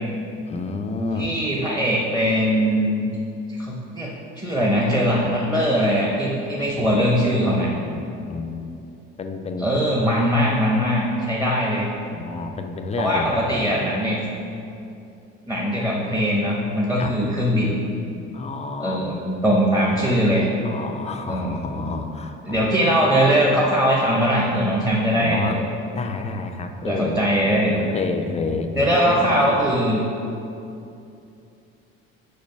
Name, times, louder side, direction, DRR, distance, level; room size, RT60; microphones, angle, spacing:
voice 1, 0.5-1.3 6.6-8.6 9.2-9.9 12.1-13.6 17.0-17.1 18.3-19.0 20.6-22.7 25.2-25.6 25.9-27.2 27.6-29.7, left 3 dB, 20° left, 5 dB, 0.5 m, -30 dB
voice 2, 1.1-3.1 3.6-4.1 4.4-7.7 9.6-11.9 13.0-14.2 15.5-17.7 18.8-20.5 21.3-21.6 22.5-25.7 26.8-27.9 28.7-30.0, equal, 10° right, -4 dB, 1.0 m, -21 dB
5.2 x 4.2 x 5.3 m, 2.7 s
supercardioid pair, 80°, 29 cm